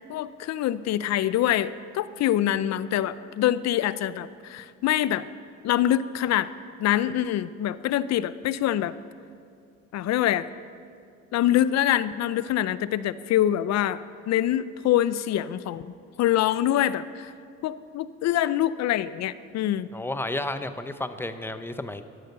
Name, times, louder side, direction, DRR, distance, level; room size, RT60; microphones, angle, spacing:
voice 1, 0.1-5.3 5.6-6.5 6.8-8.9 9.9-10.5 11.3-14.0 14.3-17.3 17.6-19.9, left 12 dB, 60° left, 16 dB, 0.6 m, -25 dB
voice 2, 19.9-22.0, left 2 dB, 10° left, 10 dB, 0.8 m, -32 dB
13.5 x 11.5 x 6.7 m, 2.4 s
supercardioid pair, 85°, 30 cm